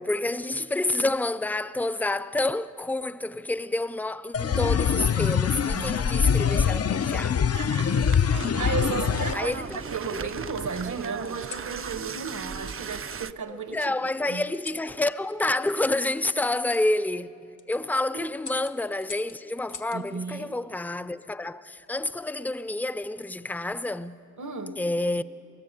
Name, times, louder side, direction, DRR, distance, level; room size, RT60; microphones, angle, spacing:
voice 1, 0.0-7.4 9.3-9.8 10.1-10.3 13.5-24.2 24.8-25.2, left 2 dB, 5° left, 0.5 m, -29 dB
sound 1, 3.9-5.0 6.0-6.4 7.7-8.5 9.1-10.0 11.2-11.7 13.1-13.2 14.5-14.9 16.7-16.8 17.4-17.7 18.4-20.0 21.5-21.9, left 6 dB, 75° left, 1.1 m, -46 dB
sound 2, 4.3-9.3, left 7 dB, 55° left, 0.5 m, -24 dB
voice 2, 5.7-6.3 7.5-8.3 8.6-13.9 14.3-14.4 16.3-16.4 18.1-18.3 19.9-20.6 24.4-24.9, right 5 dB, 75° right, 1.3 m, -34 dB
sound 3, 8.0-13.3, right 7 dB, 45° right, 0.5 m, -37 dB
29.5 x 15.5 x 8.3 m
wide cardioid pair, 100°, 30 cm